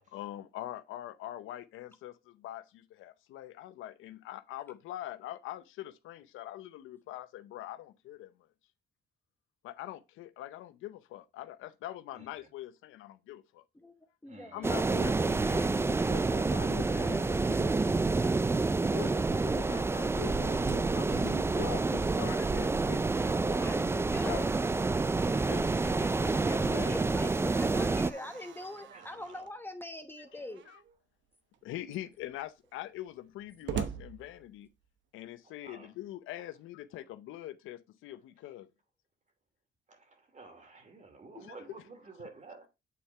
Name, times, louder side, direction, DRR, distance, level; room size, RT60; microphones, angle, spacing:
voice 1, 0.1-8.3 9.6-13.6 14.5-18.4 18.9-24.4 25.4-27.2 30.3-30.8 31.6-34.7 35.1-38.7 41.3-41.6, left 13 dB, 90° left, 0.7 m, -44 dB
voice 2, 12.1-12.5 14.2-14.7 28.0-29.5 30.2-30.5 35.4-35.9 36.4-36.5 39.9-42.7, right 3 dB, 35° right, 2.6 m, -52 dB
voice 3, 14.2-14.6 23.6-23.8 24.1-24.5 26.9-30.7, left 1 dB, 10° left, 1.0 m, -43 dB
sound 1, 14.6-28.1, right 3 dB, 15° right, 0.3 m, -28 dB
Slam, 24.0-29.6 30.5-31.0 31.5-31.6 31.9-35.0, right 8 dB, 70° right, 0.9 m, -46 dB
8.5 x 4.3 x 3.3 m
cardioid pair, 90°, 20 cm